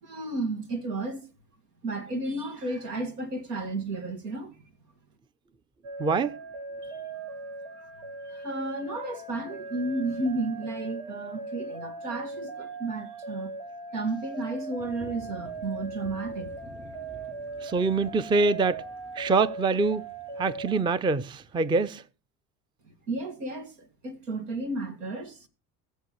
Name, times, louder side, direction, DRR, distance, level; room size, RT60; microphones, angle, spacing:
voice 1, 0.0-1.3 1.8-4.6 6.8-7.0 7.7-7.9 8.3-13.5 13.9-16.5 22.8-25.5, right 2 dB, 85° right, 2.1 m, -33 dB
sound 1, 5.8-20.8, right 3 dB, 65° right, 6.2 m, -39 dB
voice 2, 6.0-6.3 17.6-18.8 19.2-20.0 20.4-22.0, right 4 dB, 10° right, 0.5 m, -25 dB
sound 2, 14.8-21.9, right 3 dB, 25° right, 4.1 m, -51 dB
20.5 x 7.0 x 3.1 m
hypercardioid pair, 80°, 46 cm